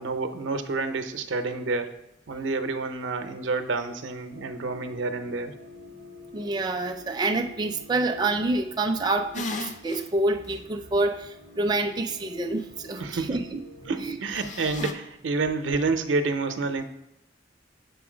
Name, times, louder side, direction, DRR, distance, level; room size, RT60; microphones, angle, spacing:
voice 1, 0.0-2.0 2.3-5.6 13.0-13.4 13.9-16.8, right 3 dB, 90° right, 8 dB, 0.6 m, -29 dB
sound 1, 4.3-14.0, left 2 dB, 70° left, 1.3 m, -49 dB
voice 2, 6.3-13.6 14.0-14.2, right 2 dB, 25° right, 5 dB, 0.4 m, -27 dB
sound 2, 9.3-10.1 10.5-10.6 14.3-14.9, left 2 dB, 40° left, 0.5 m, -34 dB
7.0 x 3.8 x 4.9 m, 0.91 s
head